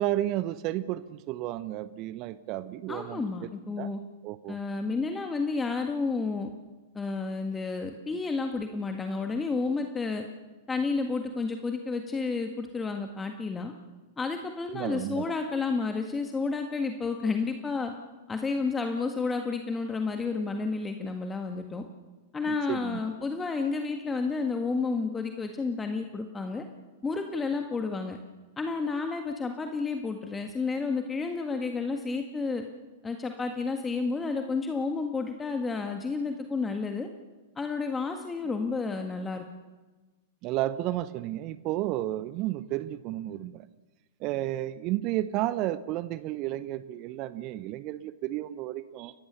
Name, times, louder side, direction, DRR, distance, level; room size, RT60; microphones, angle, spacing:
voice 1, 0.0-3.3 3.8-3.9 4.2-4.6 14.7-15.3 22.5-23.0 40.4-43.7 44.2-49.1, right 14 dB, 40° right, 16 dB, 0.8 m, -32 dB
voice 2, 2.9-4.0 4.5-6.5 7.0-10.2 10.7-13.7 14.2-17.9 18.3-21.8 22.3-26.7 27.0-28.2 28.6-32.6 33.0-37.1 37.6-39.4, left 4 dB, 15° left, 5 dB, 1.7 m, -31 dB
30.0 x 15.5 x 6.9 m, 1.2 s
figure-of-eight pair, 95°, 0 cm